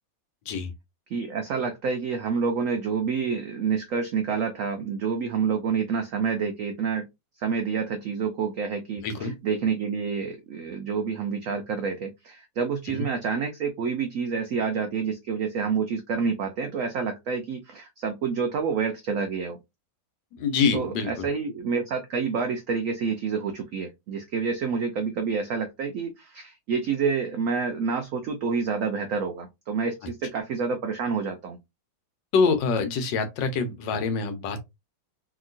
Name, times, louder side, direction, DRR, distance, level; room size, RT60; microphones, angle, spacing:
voice 1, 1.1-7.1 7.4-19.6 20.7-31.6, right 5 dB, 85° right, 0.7 m, -28 dB
voice 2, 9.0-9.3 12.9-13.1 20.3-21.3 32.3-34.6, left 5 dB, 80° left, 1.4 m, -25 dB
2.9 x 2.9 x 2.5 m
omnidirectional pair, 2.0 m